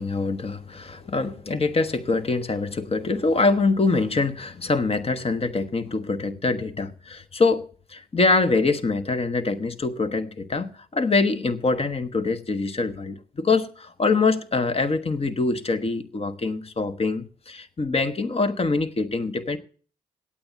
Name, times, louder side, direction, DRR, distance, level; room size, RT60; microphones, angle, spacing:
voice 1, 0.0-19.6, left 3 dB, 40° left, 1.2 m, -24 dB
8.7 x 8.7 x 8.1 m
supercardioid pair, 55°, 16 cm